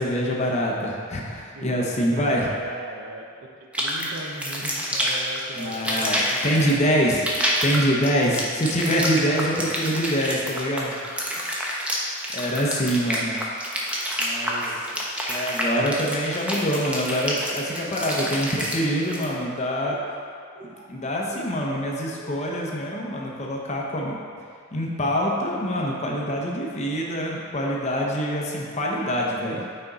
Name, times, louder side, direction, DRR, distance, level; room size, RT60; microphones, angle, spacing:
voice 1, 0.0-2.5 5.6-7.3 7.6-11.0 12.3-13.4 14.2-14.6 15.3-20.0 20.9-24.2 24.7-29.6, equal, 35° left, -2 dB, 0.7 m, -25 dB
voice 2, 1.5-3.5 3.8-6.8 8.0-8.4 9.2-9.6 14.3-15.1, right 2 dB, 65° right, 1 dB, 0.7 m, -39 dB
sound 1, 3.7-19.3, equal, 5° right, 0.6 m, -28 dB
Laughter, 17.8-21.7 22.2-22.6, equal, 25° right, 1.4 m, -47 dB
6.0 x 4.4 x 3.9 m, 2.3 s
head